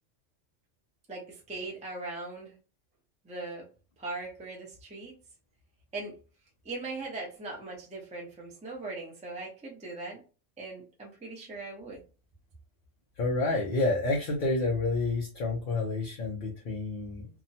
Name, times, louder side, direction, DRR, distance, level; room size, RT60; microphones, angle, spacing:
voice 1, 1.1-2.5 3.2-3.7 4.0-5.1 5.9-6.2 6.6-10.2 10.6-12.0, right 3 dB, 5° right, -2 dB, 0.6 m, -39 dB
voice 2, 13.2-17.3, left 3 dB, 50° left, -2 dB, 0.7 m, -29 dB
2.8 x 2.2 x 2.7 m, 0.34 s
omnidirectional pair, 1.3 m